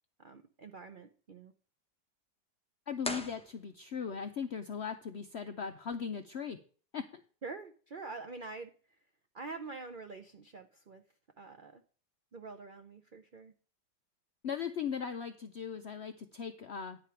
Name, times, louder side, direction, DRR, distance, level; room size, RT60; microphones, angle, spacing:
voice 1, 0.2-1.5 7.4-8.7 9.3-11.0 11.4-11.8 12.3-13.5, right 3 dB, 85° right, 7 dB, 0.4 m, -46 dB
voice 2, 2.9-6.6 6.9-7.0 14.4-17.0, left 7 dB, 75° left, 7 dB, 0.6 m, -38 dB
sound 1, 3.0-4.2, left 1 dB, 10° left, 0.4 m, -41 dB
9.9 x 5.0 x 5.7 m, 0.41 s
omnidirectional pair, 1.9 m